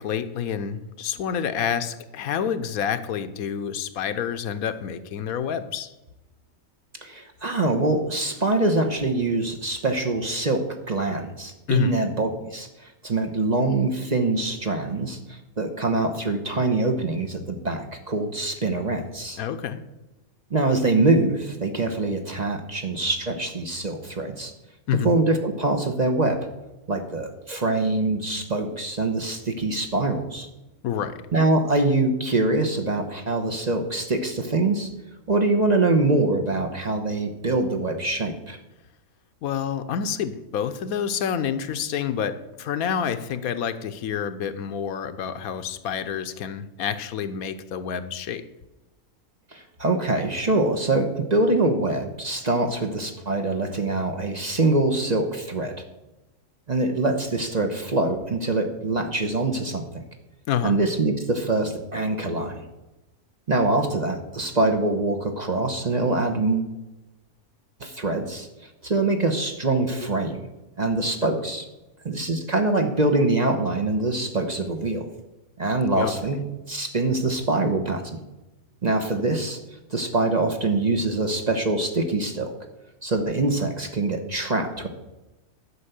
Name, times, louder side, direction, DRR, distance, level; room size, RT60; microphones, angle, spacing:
voice 1, 0.0-5.9 11.7-11.9 19.4-19.8 24.9-25.2 30.8-31.2 39.4-48.4 60.5-60.8 71.2-71.4 76.0-76.1, left 8 dB, 80° left, 12 dB, 1.2 m, -28 dB
voice 2, 7.0-12.7 13.0-19.4 20.5-24.5 24.9-26.4 26.9-30.5 31.3-34.9 35.3-38.6 49.5-55.7 56.7-60.0 60.6-62.6 63.5-66.7 67.8-68.5 68.8-70.4 70.8-71.6 72.0-75.1 75.6-76.4 76.7-78.2 78.8-79.6 79.9-82.6 83.0-84.9, right 2 dB, 35° right, 4 dB, 0.9 m, -24 dB
11.0 x 5.2 x 8.1 m, 1.0 s
omnidirectional pair, 1.5 m